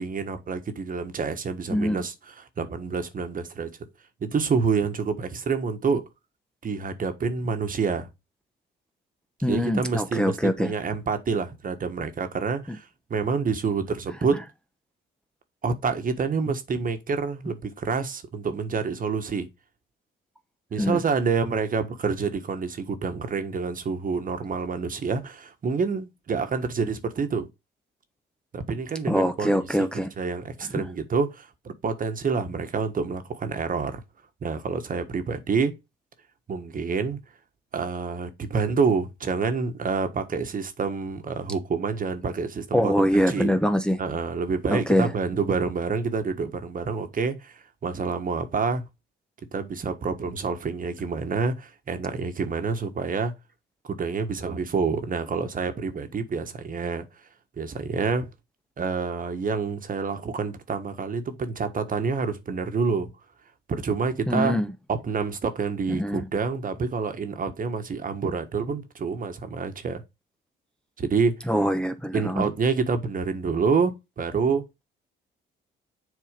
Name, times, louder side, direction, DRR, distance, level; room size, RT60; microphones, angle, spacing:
voice 1, 0.0-3.8 4.2-6.1 6.6-8.1 9.5-14.4 15.6-19.5 20.7-27.5 28.5-34.0 34.4-35.7 36.5-37.2 37.7-43.5 44.0-48.9 49.5-53.3 53.9-57.0 57.6-58.3 58.8-63.1 63.7-64.6 64.9-70.0 71.0-71.5 72.1-74.6, right 5 dB, 45° right, 1.4 m, -27 dB
voice 2, 1.7-2.0 9.4-10.7 12.7-12.8 20.8-21.0 29.1-30.1 30.8-30.9 42.7-44.0 44.7-45.1 64.3-64.7 65.9-66.3 71.5-72.4, equal, 5° left, 0.9 m, -23 dB
7.1 x 4.3 x 5.1 m
cardioid pair, 90°, 20 cm